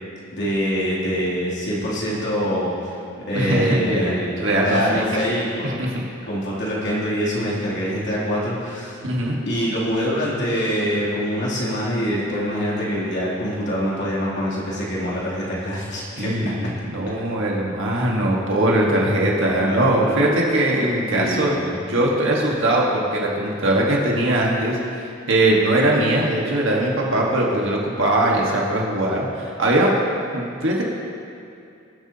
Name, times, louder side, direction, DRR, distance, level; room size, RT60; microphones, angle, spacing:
voice 1, 0.3-2.7 3.3-4.3 4.6-5.8 6.3-9.0 9.5-16.3 19.5-20.4 21.1-21.8, equal, 60° left, -7 dB, 2.9 m, -24 dB
voice 2, 3.3-5.0 5.6-6.0 9.0-9.4 16.2-21.6 21.9-29.9 30.3-30.8, right 1 dB, 65° right, -3 dB, 1.5 m, -21 dB
21.5 x 8.1 x 2.9 m, 2.5 s
head